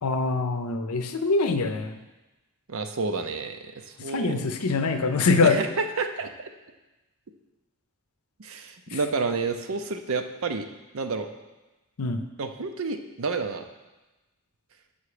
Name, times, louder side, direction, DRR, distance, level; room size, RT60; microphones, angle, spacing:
voice 1, 0.0-2.0 4.1-5.6 8.9-9.0 12.0-12.2, left 4 dB, 80° left, 8 dB, 0.6 m, -24 dB
voice 2, 2.7-3.6 3.9-4.5 5.4-6.3 8.4-10.7 10.9-11.3 12.4-13.6, right 4 dB, 65° right, 6 dB, 0.6 m, -29 dB
7.0 x 5.5 x 4.9 m, 1.1 s
head